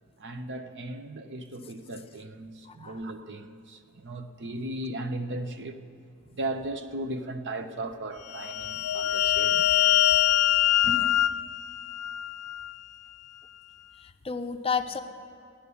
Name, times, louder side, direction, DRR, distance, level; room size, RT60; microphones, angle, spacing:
voice 1, 0.2-5.8 6.3-10.0 10.8-11.1, right 1 dB, 55° right, 0.8 m, -36 dB
voice 2, 2.7-3.0 14.0-15.0, left 5 dB, 25° left, 0.6 m, -31 dB
sound 1, 8.3-12.8, left 13 dB, 70° left, 0.3 m, -24 dB
16.0 x 10.0 x 6.9 m
head